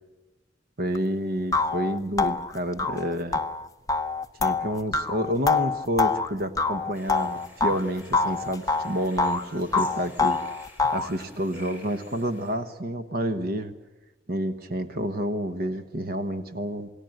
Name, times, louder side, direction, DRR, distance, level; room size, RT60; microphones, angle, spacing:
voice 1, 0.8-3.4 4.4-10.4 10.9-13.7 14.3-16.9, equal, 55° right, 10 dB, 1.2 m, -29 dB
sound 1, 0.9-1.0 1.5-7.8 8.1-9.4 9.7-11.1, left 4 dB, 20° left, 0.7 m, -25 dB
sound 2, 6.9-12.6, left 1 dB, 10° right, 5.7 m, -50 dB
28.5 x 18.5 x 7.9 m, 1.1 s
head